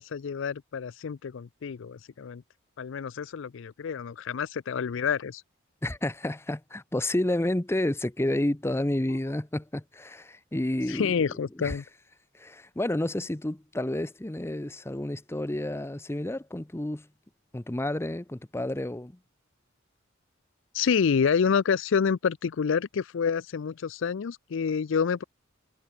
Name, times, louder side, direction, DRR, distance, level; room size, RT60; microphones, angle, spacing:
voice 1, 0.0-2.4 2.8-5.4 10.9-11.8 20.7-25.2, left 6 dB, 65° left, 0.4 m, -28 dB
voice 2, 5.8-11.2 11.6-11.8 12.3-17.1 17.5-19.2, left 1 dB, 10° left, 0.7 m, -30 dB
head